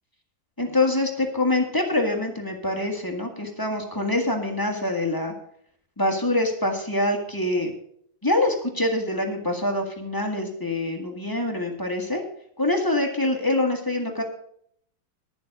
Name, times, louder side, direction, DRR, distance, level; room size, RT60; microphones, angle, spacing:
voice 1, 0.6-5.3 6.0-7.7 8.2-12.2 12.6-14.2, left 2 dB, 10° left, 1 dB, 1.4 m, -25 dB
11.5 x 7.1 x 6.5 m, 0.67 s
omnidirectional pair, 2.1 m